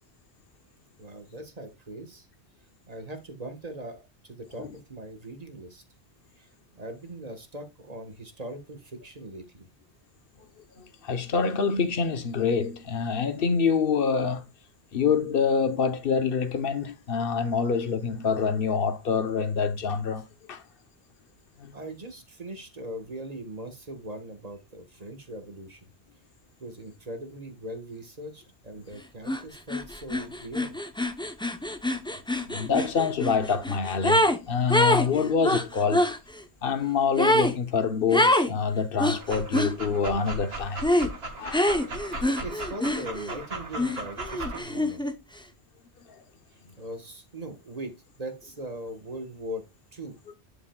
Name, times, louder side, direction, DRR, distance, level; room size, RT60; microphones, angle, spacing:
voice 1, 1.0-2.3 2.9-5.8 6.4-9.6 21.7-25.9 26.6-30.8 41.1-41.3 42.1-45.0 46.5-49.6 49.9-50.2, right 1 dB, 35° right, 1.4 m, -40 dB
voice 2, 10.8-14.4 14.9-20.6 21.6-21.7 32.5-36.1 36.6-40.9 41.4-41.8 46.1-46.2, left 6 dB, 60° left, 1.1 m, -26 dB
sound 1, 29.3-29.4 29.7-34.4 34.7-36.2 37.2-37.6 38.1-38.5 39.0-39.7 40.8-41.1 41.5-43.4 43.8-45.1, left 1 dB, 5° left, 0.6 m, -25 dB
Dog, 39.2-44.6, right 2 dB, 65° right, 1.9 m, -37 dB
11.0 x 5.3 x 2.3 m
omnidirectional pair, 1.1 m